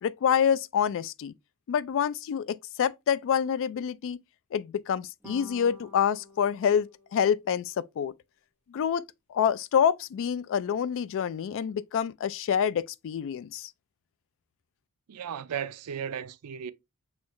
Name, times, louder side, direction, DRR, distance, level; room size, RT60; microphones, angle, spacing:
voice 1, 0.0-1.3 1.7-4.2 4.5-8.1 8.7-13.7, left 8 dB, 60° left, 0.3 m, -27 dB
sound 1, 5.2-7.8, left 2 dB, 10° right, 0.9 m, -50 dB
voice 2, 15.1-16.7, right 8 dB, 85° right, 0.4 m, -35 dB
6.1 x 2.3 x 3.0 m
head